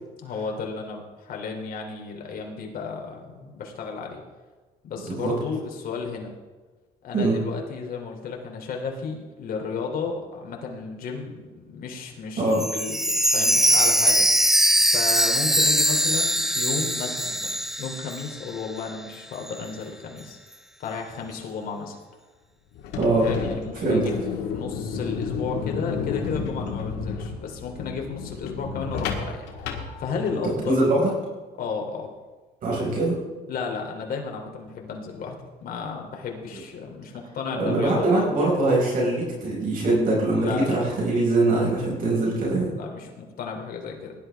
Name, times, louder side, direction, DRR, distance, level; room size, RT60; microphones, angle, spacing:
voice 1, 0.2-4.2 4.8-6.3 7.0-14.5 14.9-20.4 20.8-22.0 23.2-24.1 24.5-30.8 31.6-32.1 33.5-35.3 35.6-38.5 40.3-40.8 42.8-44.1, left 5 dB, 60° left, 1 dB, 3.0 m, -33 dB
Chime, 12.5-18.5 18.8-18.9 19.5-19.6, equal, ahead, 0.6 m, -21 dB
sound 1, 22.7-30.6, left 6 dB, 90° left, 1.9 m, -32 dB
voice 2, 22.9-23.3 23.8-24.0 30.7-31.1 32.6-33.2 37.6-42.7, right 2 dB, 55° right, -4 dB, 5.0 m, -22 dB
18.5 x 11.5 x 3.4 m, 1.3 s
cardioid pair, 110°, 17 cm